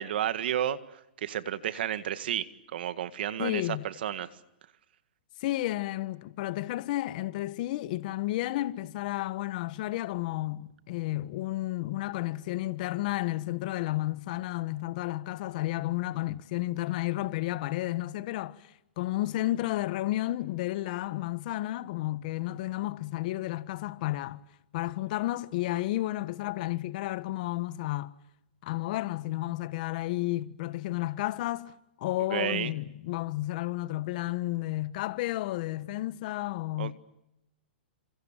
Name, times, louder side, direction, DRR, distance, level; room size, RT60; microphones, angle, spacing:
voice 1, 0.0-4.3 32.3-32.7 36.8-36.9, right 10 dB, 65° right, 1.9 m, -32 dB
voice 2, 3.4-3.8 5.4-24.4 24.7-28.1 28.6-36.9, left 16 dB, 50° left, 1.4 m, -32 dB
29.0 x 27.0 x 7.5 m
hypercardioid pair, 140°, 6 cm